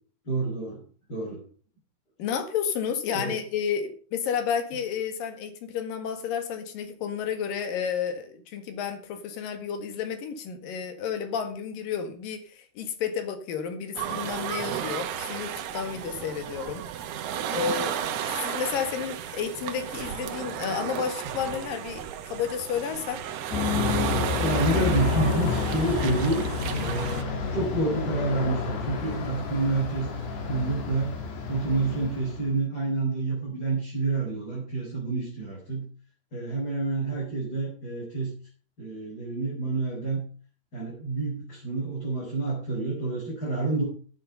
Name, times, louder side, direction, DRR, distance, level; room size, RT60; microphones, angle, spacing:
voice 1, 0.2-0.8 1.1-1.4 3.1-3.3 24.4-26.5 26.7-27.3 27.5-30.1 30.5-31.1 31.5-35.8 36.3-38.3 38.8-40.2 40.7-43.8, right 3 dB, 25° left, -5 dB, 5.4 m, -28 dB
voice 2, 2.2-16.8 17.5-18.0 18.4-23.2, left 7 dB, 65° left, 8 dB, 3.2 m, -31 dB
sound 1, 14.0-27.2, right 9 dB, 85° right, 3.2 m, -33 dB
Aircraft, 23.5-32.5, left 5 dB, 85° left, 4.6 m, -29 dB
12.5 x 9.0 x 5.5 m, 0.43 s
omnidirectional pair, 4.6 m